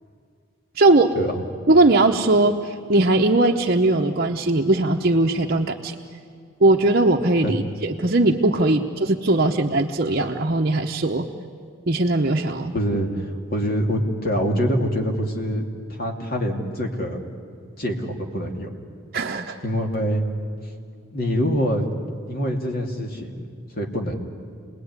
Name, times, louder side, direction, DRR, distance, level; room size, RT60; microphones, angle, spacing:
voice 1, 0.8-1.1 1.7-5.9 6.6-11.3 11.9-12.7 19.1-19.6, right 2 dB, 45° right, 2 dB, 0.9 m, -19 dB
voice 2, 12.7-15.6 15.9-17.2 17.8-18.7 19.6-20.2 21.1-21.9 22.3-23.5 23.8-24.1, equal, 45° left, 2 dB, 2.7 m, -25 dB
28.0 x 20.0 x 9.7 m, 2.2 s
head